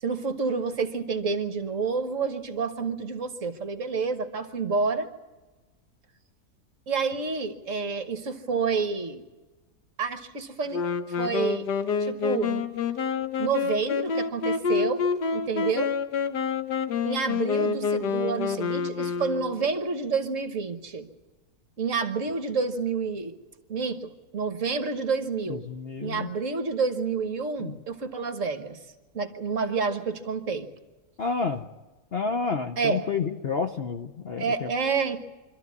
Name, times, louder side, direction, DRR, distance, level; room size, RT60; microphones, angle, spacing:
voice 1, 0.0-5.1 6.9-9.2 10.0-10.8 11.1-11.7 12.0-12.7 13.4-15.0 15.3-15.9 17.0-21.1 21.8-23.3 23.7-25.6 26.0-28.8 29.1-30.7 32.8-33.0 34.4-35.2, right 5 dB, 50° right, 8 dB, 1.5 m, -29 dB
Wind instrument woodwind instrument, 10.7-19.7, left 5 dB, 80° left, 1.6 m, -28 dB
voice 2, 25.5-26.3 27.6-27.8 31.2-31.6 32.1-34.7, left 5 dB, 50° left, 5 dB, 0.8 m, -30 dB
25.0 x 13.5 x 9.5 m, 1.2 s
omnidirectional pair, 1.8 m